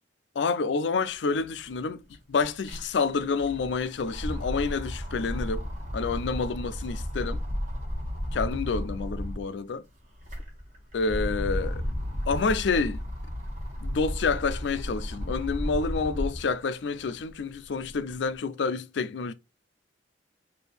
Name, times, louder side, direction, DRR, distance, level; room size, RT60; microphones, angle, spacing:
voice 1, 0.4-2.0 2.3-5.6 5.9-7.4 8.3-9.8 10.9-11.8 12.3-13.0 13.8-19.3, left 4 dB, 85° left, 0.4 m, -28 dB
sound 1, 1.4-1.5 1.7-9.5 10.0-16.5 17.0-18.2, equal, 45° right, 1.5 m, -33 dB
4.3 x 2.7 x 3.3 m
head